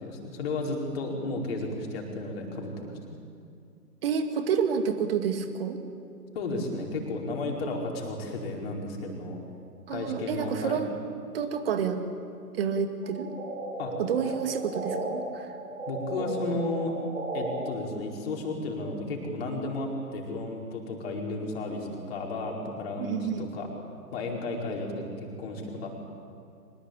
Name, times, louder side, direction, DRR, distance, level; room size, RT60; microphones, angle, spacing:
voice 1, 0.0-3.2 6.3-9.4 9.9-10.8 13.8-13.9 15.9-16.9 17.3-23.7 24.1-25.9, left 2 dB, 40° left, 0 dB, 5.0 m, -33 dB
voice 2, 4.0-5.8 9.9-10.9 11.3-12.0 12.5-13.3 14.0-15.5 23.0-23.4, right 7 dB, 40° right, 7 dB, 2.3 m, -29 dB
sound 1, 13.0-15.1 15.4-17.5, right 2 dB, 60° right, 7.0 m, -35 dB
24.0 x 20.5 x 8.8 m, 2.4 s
figure-of-eight pair, 130°, 47 cm